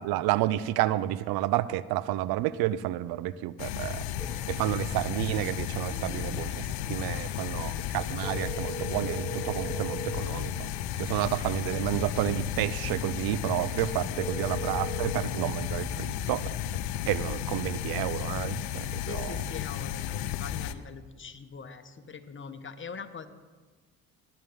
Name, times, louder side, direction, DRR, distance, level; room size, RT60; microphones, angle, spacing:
voice 1, 0.0-6.6 6.9-10.7 11.0-16.4 17.1-19.4, right 14 dB, 70° right, 18 dB, 0.5 m, -30 dB
sound 1, 3.6-20.7, left 11 dB, 85° left, 0.6 m, -33 dB
sound 2, 4.2-15.1, right 1 dB, 5° left, 1.8 m, -43 dB
voice 2, 5.9-6.3 7.1-7.7 14.1-14.3 19.0-23.3, left 5 dB, 30° left, 10 dB, 1.1 m, -43 dB
18.0 x 9.2 x 3.6 m, 1.4 s
hypercardioid pair, 60°, 38 cm